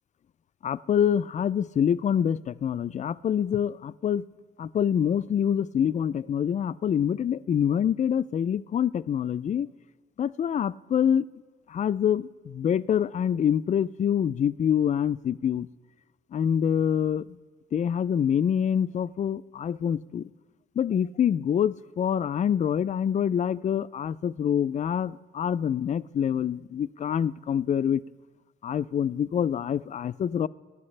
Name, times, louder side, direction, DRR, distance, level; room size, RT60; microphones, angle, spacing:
voice 1, 0.6-4.2 4.6-9.7 10.2-11.3 11.7-15.7 16.3-17.2 17.7-20.3 20.8-28.0 28.6-30.5, left 8 dB, 35° left, 17 dB, 0.4 m, -26 dB
25.0 x 11.0 x 3.3 m, 1.4 s
cardioid pair, 90°, 20 cm